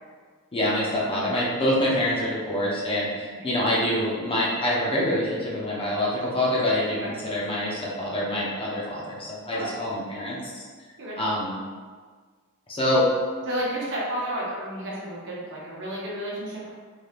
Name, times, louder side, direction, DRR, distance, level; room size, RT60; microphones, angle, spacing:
voice 1, 0.5-10.6 11.2-11.5 12.7-13.1, left 1 dB, 25° left, -5 dB, 0.6 m, -26 dB
voice 2, 13.5-16.7, right 1 dB, 60° right, -5 dB, 0.8 m, -32 dB
3.2 x 2.7 x 2.4 m, 1.6 s
head